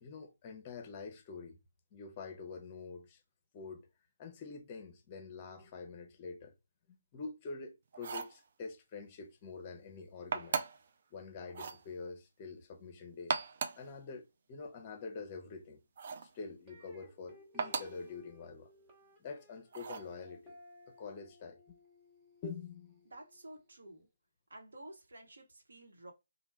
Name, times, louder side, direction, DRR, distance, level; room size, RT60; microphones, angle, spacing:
voice 1, 0.0-1.6 1.9-3.2 3.5-3.8 4.2-6.5 6.9-10.6 11.1-13.4 13.7-15.8 16.3-18.7 19.2-20.6 20.9-21.6 22.4-22.9, left 4 dB, 30° left, 0.6 m, -46 dB
sound 1, 7.9-8.4 10.3-10.9 11.5-11.8 13.1-13.9 16.0-16.3 17.6-18.0 19.7-20.1, right 5 dB, 45° right, 0.4 m, -37 dB
sound 2, 16.7-23.8, left 1 dB, 20° right, 1.0 m, -61 dB
voice 2, 23.0-24.1 24.5-26.1, right 1 dB, 70° right, 1.0 m, -52 dB
3.2 x 2.2 x 3.1 m
figure-of-eight pair, 145°, 0 cm